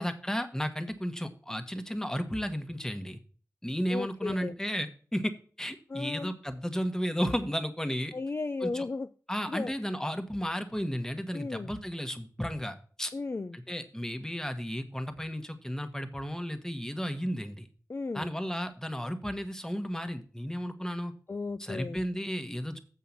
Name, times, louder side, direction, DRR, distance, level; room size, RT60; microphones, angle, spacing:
voice 1, 0.0-3.2 3.6-8.1 8.6-8.9 9.3-13.1 13.5-17.7 18.1-21.1 21.6-22.8, equal, 10° left, 1.2 m, -33 dB
voice 2, 3.9-4.5 5.9-6.3 8.1-9.1 9.5-9.7 11.3-11.7 13.1-13.6 17.9-18.3 21.3-22.0, left 3 dB, 35° left, 0.4 m, -35 dB
7.7 x 5.5 x 7.1 m
wide cardioid pair, 80°, 6 cm